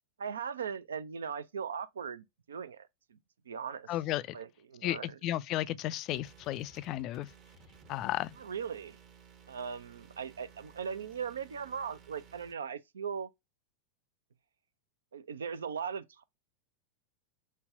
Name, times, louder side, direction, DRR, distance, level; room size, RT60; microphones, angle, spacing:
voice 1, 0.2-3.2 3.5-3.9 4.3-5.2 8.4-9.0 9.5-13.3 15.1-16.2, right 7 dB, 65° right, 0.4 m, -39 dB
voice 2, 3.9-4.4 4.8-7.3 7.9-8.4, left 14 dB, 40° left, 0.3 m, -34 dB
sound 1, 6.1-12.5, right 6 dB, 35° right, 0.9 m, -57 dB
5.3 x 2.2 x 2.4 m
figure-of-eight pair, 90°, 0 cm